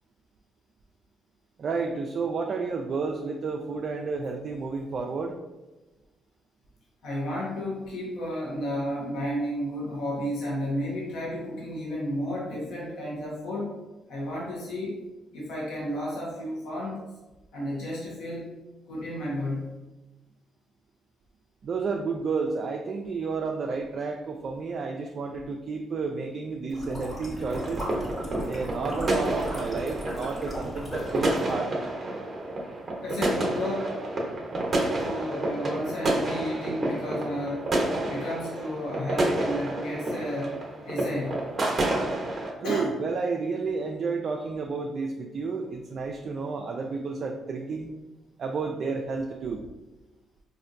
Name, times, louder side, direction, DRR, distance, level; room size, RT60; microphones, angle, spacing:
voice 1, 1.6-5.3 21.6-27.9 28.5-31.8 42.6-47.9 48.4-49.6, right 4 dB, 55° right, 2 dB, 0.3 m, -31 dB
voice 2, 7.0-13.7 14.1-15.0 15.3-17.0 17.5-18.5 18.9-19.8 33.0-34.0 35.0-37.7 38.1-40.6 40.8-41.4 42.6-42.9, equal, 80° left, -5 dB, 0.9 m, -32 dB
sound 1, 26.7-31.5, equal, 25° left, 1.4 m, -37 dB
sound 2, 27.4-42.5, right 1 dB, 35° right, 0.8 m, -29 dB
4.0 x 2.5 x 2.5 m, 1.1 s
cardioid pair, 90°, 0 cm